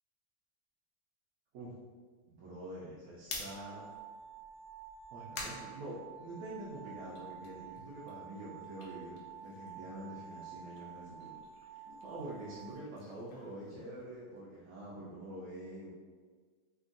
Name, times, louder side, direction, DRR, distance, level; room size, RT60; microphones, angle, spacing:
voice 1, 2.3-3.9 5.1-11.4 12.0-15.9, right 1 dB, 85° right, -6 dB, 1.2 m, -46 dB
sound 1, 3.2-6.6 7.0-10.0 10.2-14.4, left 3 dB, 80° left, 1.1 m, -50 dB
sound 2, 3.5-12.7, right 7 dB, 65° right, 0.7 m, -50 dB
3.5 x 2.2 x 2.4 m, 1.5 s
omnidirectional pair, 1.7 m